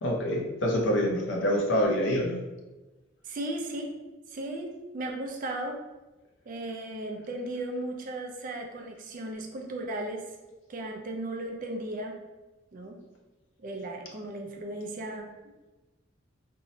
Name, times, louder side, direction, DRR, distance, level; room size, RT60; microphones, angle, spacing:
voice 1, 0.0-2.4, equal, 70° left, 0 dB, 0.5 m, -26 dB
voice 2, 3.2-3.9 4.3-5.8 6.5-10.2 10.7-12.2 12.7-13.0 13.6-15.3, right 1 dB, 45° right, 2 dB, 0.4 m, -36 dB
2.7 x 2.0 x 2.6 m, 1.1 s
head